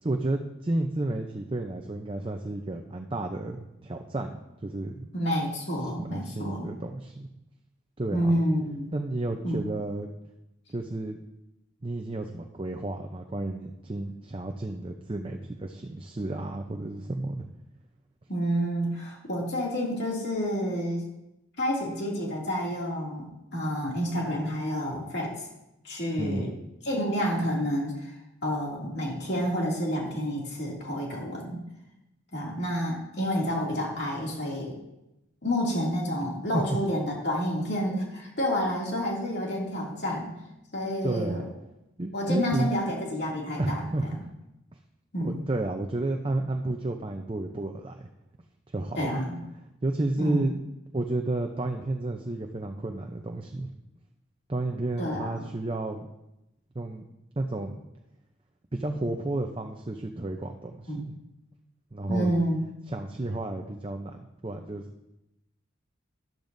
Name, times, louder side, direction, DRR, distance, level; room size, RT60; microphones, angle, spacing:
voice 1, 0.0-5.1 6.0-7.3 8.0-8.3 8.9-10.1 10.7-11.2 11.8-17.5 26.2-26.6 36.5-36.6 41.0-41.5 42.0-42.7 43.6-44.3 45.2-48.1 48.7-49.2 49.8-50.6 50.9-53.7 54.5-56.1 56.7-57.0 57.4-57.8 58.7-61.1 61.9-62.3 62.9-64.8, right 2 dB, 25° right, 4 dB, 0.6 m, -31 dB
voice 2, 5.1-6.7 8.1-8.9 9.4-9.6 18.3-21.1 21.6-23.3 23.5-25.3 25.8-26.5 26.8-28.1 28.4-31.6 32.3-34.7 35.4-40.3 40.7-41.4 42.1-43.8 45.1-45.4 49.0-49.4 50.2-50.4 55.0-55.4 60.9-61.1 62.1-62.6, equal, 60° left, -3 dB, 2.5 m, -29 dB
12.0 x 12.0 x 2.6 m, 0.90 s
head